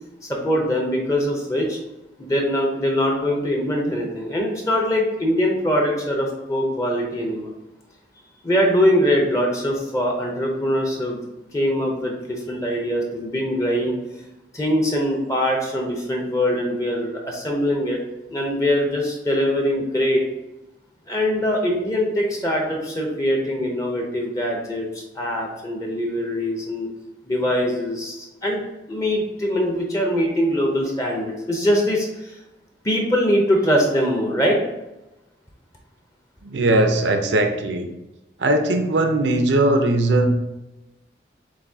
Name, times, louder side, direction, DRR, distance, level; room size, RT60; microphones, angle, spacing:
voice 1, 0.3-1.8 2.2-7.5 8.4-11.2 11.5-14.0 14.5-18.0 18.3-20.3 21.1-26.9 27.2-28.6 28.9-32.4 32.8-34.6, equal, 20° left, 0 dB, 0.6 m, -22 dB
voice 2, 36.4-37.9 38.4-40.3, right 1 dB, 80° right, 6 dB, 0.6 m, -19 dB
7.2 x 2.7 x 2.7 m, 0.99 s
head